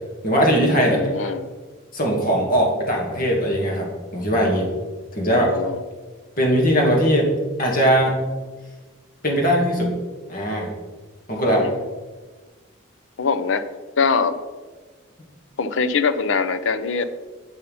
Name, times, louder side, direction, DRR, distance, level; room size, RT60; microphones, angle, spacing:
voice 1, 0.2-1.3 1.9-3.9 4.1-4.7 5.1-5.6 6.4-7.3 7.6-8.2 9.2-9.9 10.3-10.7 11.3-11.7, equal, 40° left, -1 dB, 2.0 m, -20 dB
voice 2, 0.9-1.4 5.3-5.8 11.6-11.8 13.2-13.7 14.0-14.4 15.6-17.1, left 5 dB, 70° left, 11 dB, 0.6 m, -23 dB
8.2 x 5.6 x 5.4 m, 1.3 s
head